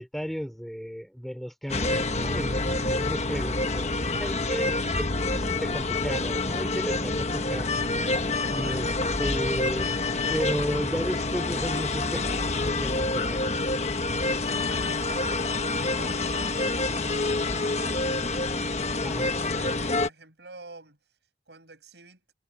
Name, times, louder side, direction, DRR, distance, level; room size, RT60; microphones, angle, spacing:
voice 1, 0.0-7.8 8.5-8.9 9.2-9.9 10.3-13.5 19.0-19.3, equal, ahead, 2.9 m, -34 dB
sound 1, 1.7-20.1, left 2 dB, 40° left, 1.2 m, -27 dB
voice 2, 2.4-3.0 8.6-8.9 14.1-18.4 19.2-21.0 21.5-22.2, right 3 dB, 80° right, 5.9 m, -47 dB
head